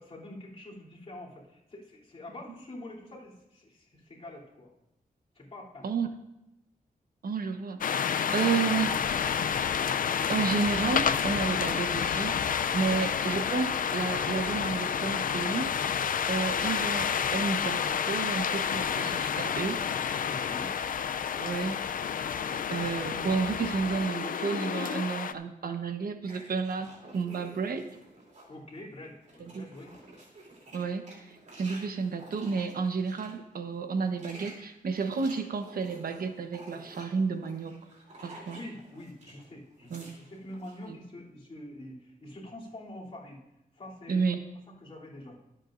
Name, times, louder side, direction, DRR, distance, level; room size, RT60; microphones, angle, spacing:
voice 1, 0.0-4.7 5.3-5.9 12.9-13.1 20.2-20.7 28.5-30.0 38.5-43.4 43.7-44.2 44.8-45.4, left 1 dB, 40° left, -5 dB, 3.0 m, -45 dB
voice 2, 7.2-8.9 10.3-12.3 12.7-15.7 16.0-19.8 21.3-21.8 22.7-27.9 29.4-29.7 30.7-37.7 38.2-38.6 39.9-40.1 40.9-41.0 44.1-44.4, right 5 dB, 75° right, 7 dB, 1.0 m, -31 dB
sound 1, 7.8-25.3, left 7 dB, 65° left, 0.4 m, -29 dB
sound 2, 26.2-28.6 29.0-33.3 33.9-39.4 39.7-40.8, right 1 dB, 55° right, 3.0 m, -51 dB
23.0 x 8.2 x 2.6 m, 0.89 s
wide cardioid pair, 125°, 15 cm